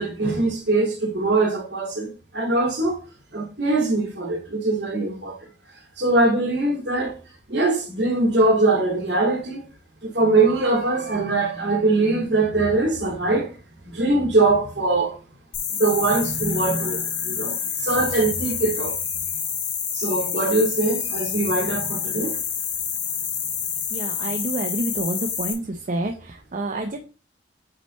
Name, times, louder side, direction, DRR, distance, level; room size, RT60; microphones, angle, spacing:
voice 1, 0.0-3.0 3.3-5.5 6.0-7.2 7.5-9.7 10.0-13.5 13.8-15.2 15.7-19.0 19.9-22.4, right 2 dB, 65° right, 2.4 m, -22 dB
sound 1, 15.5-25.5, left 8 dB, 85° left, 1.6 m, -28 dB
voice 2, 23.9-25.6 25.9-27.0, right 2 dB, 45° right, 0.7 m, -28 dB
8.7 x 3.2 x 4.3 m
head